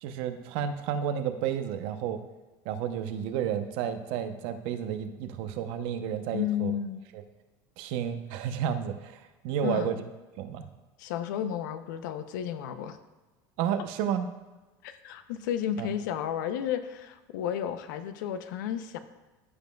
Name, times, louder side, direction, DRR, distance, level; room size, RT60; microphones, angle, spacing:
voice 1, 0.0-2.2 2.6-6.7 7.1-7.2 7.8-10.0 10.4-10.6 13.6-14.3 15.8-15.9, right 9 dB, 65° right, 8 dB, 0.7 m, -31 dB
voice 2, 6.3-7.0 9.6-9.9 11.0-13.0 14.8-19.0, left 9 dB, 90° left, 10 dB, 0.6 m, -32 dB
14.5 x 5.2 x 2.3 m, 1.2 s
supercardioid pair, 125°, 10 cm